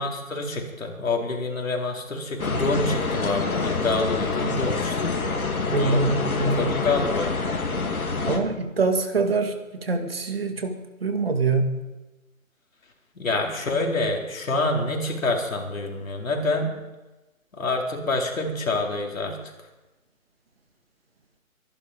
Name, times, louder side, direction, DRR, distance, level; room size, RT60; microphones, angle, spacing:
voice 1, 0.0-5.1 5.7-6.1 6.6-7.3 13.1-16.8 17.6-19.4, left 2 dB, 70° left, 1 dB, 4.4 m, -27 dB
sound 1, 2.4-8.4, left 4 dB, 85° left, 3.0 m, -26 dB
voice 2, 5.7-6.8 8.3-11.8, right 3 dB, 45° right, 6 dB, 2.2 m, -24 dB
24.0 x 11.5 x 5.2 m, 1.1 s
hypercardioid pair, 175°, 42 cm